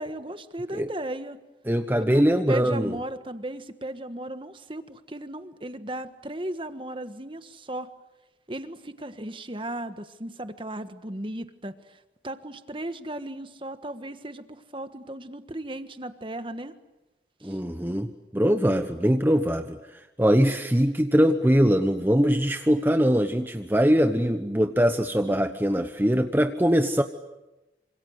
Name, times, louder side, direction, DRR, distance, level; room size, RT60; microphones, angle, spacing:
voice 1, 0.0-1.4 2.0-7.9 8.5-16.7 17.4-17.6, right 1 dB, 30° right, 10 dB, 1.5 m, -36 dB
voice 2, 1.7-2.9 17.4-27.0, equal, 10° right, 7 dB, 1.0 m, -22 dB
28.0 x 26.5 x 8.1 m, 1.0 s
head